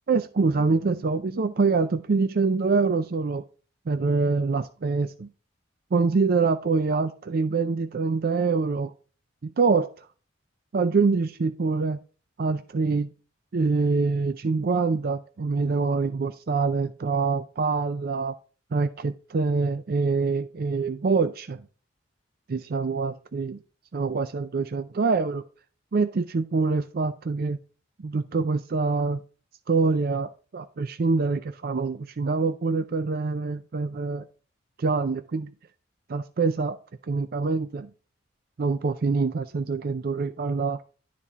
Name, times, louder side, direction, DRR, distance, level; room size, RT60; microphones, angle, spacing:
voice 1, 0.1-3.4 3.9-5.3 5.9-8.9 9.4-9.9 10.7-12.0 12.4-13.1 13.5-18.3 18.7-21.6 22.5-23.6 23.9-25.4 25.9-27.6 28.0-29.2 29.7-34.3 34.8-35.5 36.1-36.8 37.1-37.9 38.6-40.8, right 4 dB, 50° right, 0.4 m, -25 dB
12.0 x 4.2 x 3.6 m
head